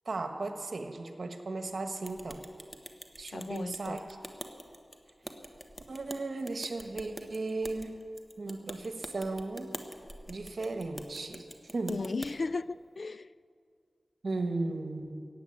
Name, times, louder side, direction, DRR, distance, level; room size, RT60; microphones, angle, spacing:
voice 1, 0.0-2.4 3.2-4.2 5.9-7.9 8.4-9.8 10.3-11.5 11.7-12.0 14.2-15.3, right 3 dB, 65° right, 1.3 m, -36 dB
sound 1, 2.0-12.3, equal, 5° left, 1.3 m, -46 dB
voice 2, 3.3-4.1 11.9-13.3, left 3 dB, 60° left, 0.3 m, -36 dB
15.5 x 9.6 x 8.5 m
wide cardioid pair, 65°, 0 cm